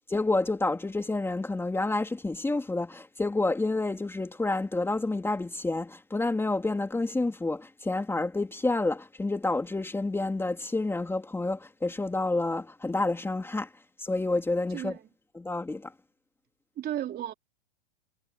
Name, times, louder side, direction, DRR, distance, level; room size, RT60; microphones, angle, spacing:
voice 1, 0.1-13.7 14.0-14.9 15.3-15.9, left 2 dB, 5° left, 3.0 m, -29 dB
voice 2, 14.7-15.1 16.8-17.3, right 11 dB, 30° right, 3.5 m, -34 dB
hypercardioid pair, 125°, 33 cm